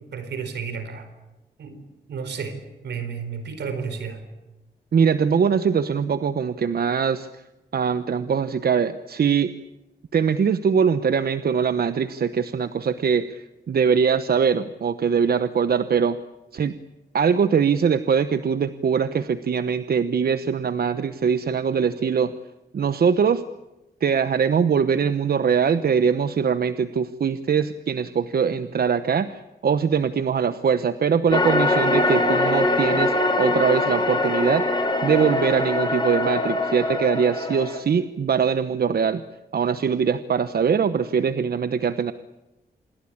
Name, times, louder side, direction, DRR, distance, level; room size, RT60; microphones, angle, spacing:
voice 1, 0.1-1.1 1.6-1.8 2.1-4.2, right 6 dB, 90° right, 10 dB, 4.4 m, -32 dB
voice 2, 4.9-7.4 7.7-9.5 10.1-16.2 16.5-16.8 17.1-22.3 22.7-23.4 24.0-39.2 39.5-42.1, right 6 dB, 65° right, 12 dB, 1.0 m, -22 dB
sound 1, 31.3-37.8, left 2 dB, 25° left, 4.6 m, -22 dB
27.0 x 21.0 x 8.8 m, 1.0 s
cardioid pair, 80°, 17 cm